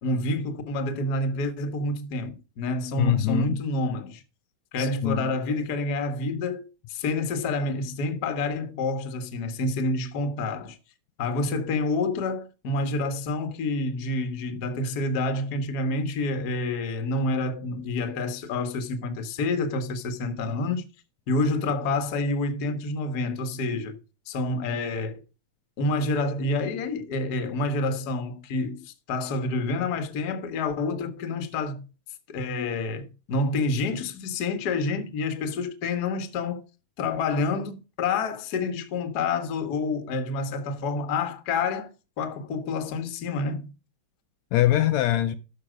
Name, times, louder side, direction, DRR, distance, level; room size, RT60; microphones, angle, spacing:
voice 1, 0.0-4.2 4.7-10.8 11.2-20.8 21.3-24.0 24.3-25.2 25.8-31.8 32.3-36.6 37.0-41.9 42.2-43.7, left 2 dB, 45° left, 1.4 m, -28 dB
voice 2, 3.0-3.6 4.8-5.3 44.5-45.4, left 13 dB, 80° left, 1.8 m, -23 dB
13.0 x 5.4 x 5.0 m
omnidirectional pair, 3.3 m